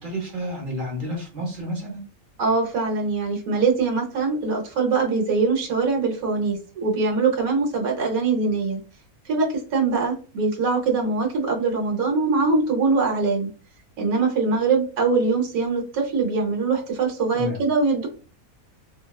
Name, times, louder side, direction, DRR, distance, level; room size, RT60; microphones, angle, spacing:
voice 1, 0.0-2.0 17.3-17.6, equal, 45° right, 0 dB, 0.8 m, -30 dB
voice 2, 2.4-8.8 9.2-13.5 14.0-18.1, right 4 dB, 80° right, 0 dB, 1.2 m, -22 dB
2.8 x 2.1 x 2.2 m, 0.37 s
omnidirectional pair, 1.5 m